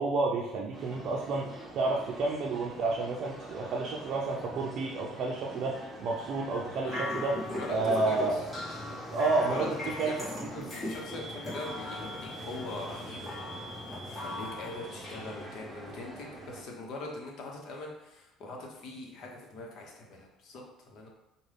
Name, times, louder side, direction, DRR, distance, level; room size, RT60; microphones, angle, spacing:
voice 1, 0.0-8.4 9.1-10.1 10.6-10.7, right 3 dB, 55° right, -2 dB, 0.5 m, -30 dB
sound 1, 0.7-16.6, right 1 dB, 10° right, 0.9 m, -45 dB
sound 2, 6.8-15.5, left 1 dB, 25° left, 1.4 m, -39 dB
voice 2, 7.5-8.5 9.5-9.7 10.0-10.2 10.5-13.3 14.1-21.1, left 2 dB, 60° left, 0 dB, 1.0 m, -42 dB
5.1 x 2.3 x 3.3 m, 0.93 s
supercardioid pair, 100°, 0 cm